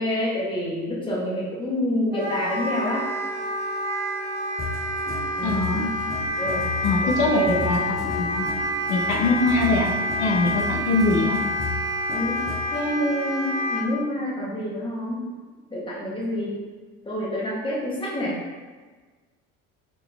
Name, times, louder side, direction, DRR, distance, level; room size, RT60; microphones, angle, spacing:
voice 1, 0.0-3.0 5.4-5.6 6.4-6.7 7.3-7.6 12.1-12.4 12.7-15.2 15.7-16.6 17.0-18.4, equal, 15° left, -5 dB, 1.2 m, -27 dB
Wind instrument woodwind instrument, 2.1-13.8, equal, 35° right, 1.4 m, -28 dB
sound 1, 4.6-12.8, left 2 dB, 30° left, 0.9 m, -35 dB
voice 2, 5.4-5.9 6.8-8.5 8.9-9.9 10.2-11.4, left 3 dB, 75° left, 0 dB, 0.7 m, -23 dB
4.2 x 3.3 x 3.4 m, 1.4 s
cardioid pair, 130°, 29 cm